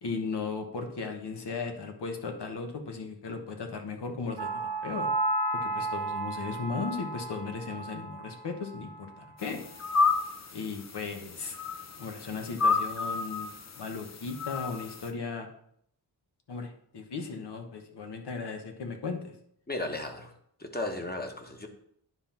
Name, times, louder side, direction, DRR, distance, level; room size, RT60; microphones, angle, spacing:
voice 1, 0.0-5.1 5.6-9.6 10.5-11.6 12.0-15.5 16.5-19.3, left 4 dB, 80° left, 4 dB, 1.3 m, -36 dB
sound 1, 4.4-8.4 8.7-9.0, right 2 dB, 85° right, 1.0 m, -33 dB
sound 2, 9.4-15.1, left 4 dB, 40° left, 0.7 m, -31 dB
voice 2, 19.7-20.3 20.6-21.7, left 2 dB, 25° left, 4 dB, 1.2 m, -35 dB
9.8 x 3.8 x 5.8 m, 0.69 s
wide cardioid pair, 145°, 40 cm